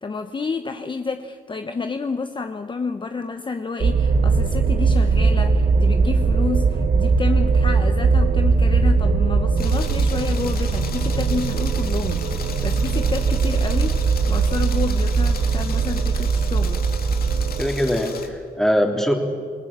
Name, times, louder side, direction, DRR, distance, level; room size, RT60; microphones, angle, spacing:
voice 1, 0.0-16.8, left 4 dB, 30° left, 7 dB, 1.0 m, -30 dB
sound 1, 3.8-17.6, right 4 dB, 65° right, 1.8 m, -20 dB
sound 2, 9.6-18.3, left 6 dB, 75° left, 2.4 m, -37 dB
voice 2, 17.6-19.2, equal, 5° left, 2 dB, 3.4 m, -21 dB
28.5 x 18.5 x 7.5 m, 2.1 s
cardioid pair, 105°, 16 cm